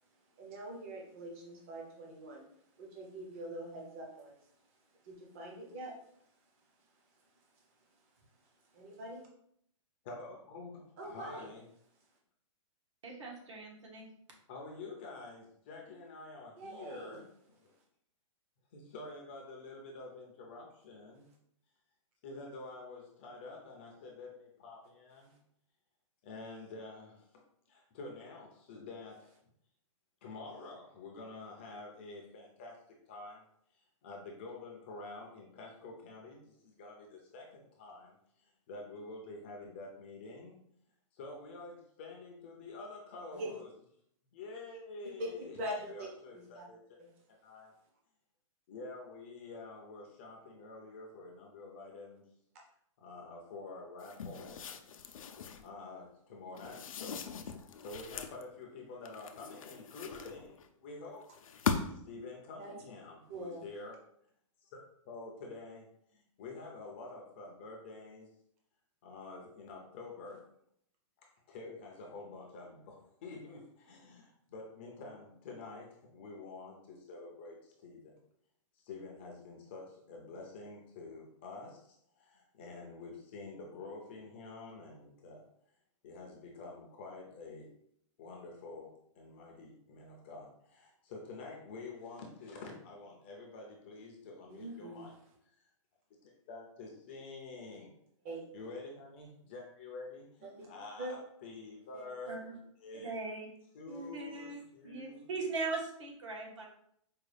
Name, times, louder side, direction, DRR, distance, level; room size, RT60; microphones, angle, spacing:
voice 1, 0.1-9.3 11.0-11.5 16.6-17.2 25.3-25.4 43.3-43.5 45.2-45.3 45.6-46.7 47.0-47.1 62.6-62.7 63.3-63.6 94.5-95.1 98.2-98.4 100.6-100.7 101.0-101.1 101.9-102.0 103.9-104.1, right 1 dB, 25° right, -1 dB, 0.6 m, -45 dB
voice 2, 10.0-11.6 14.5-17.7 18.7-21.3 22.2-25.3 26.2-29.3 30.2-33.4 33.8-40.6 41.1-43.7 44.3-45.5 45.9-46.8 47.4-47.7 48.7-52.2 53.0-54.7 55.1-55.2 55.6-57.2 57.8-61.3 61.9-64.0 64.6-64.8 65.1-68.3 69.0-70.5 71.5-78.2 78.7-85.4 86.0-87.7 88.2-95.1 95.6-95.7 96.2-97.9 98.5-102.4 102.8-103.2 103.7-105.3, left 3 dB, 20° left, 0 dB, 0.4 m, -48 dB
voice 3, 13.0-14.1 102.3-102.5 103.0-103.5 104.1-106.7, right 3 dB, 65° right, 0 dB, 1.2 m, -40 dB
sound 1, 54.0-55.7 56.6-58.4 59.1-60.7 61.3-62.1, left 6 dB, 85° left, 0.5 m, -39 dB
4.7 x 2.3 x 3.2 m, 0.69 s
hypercardioid pair, 175°, 17 cm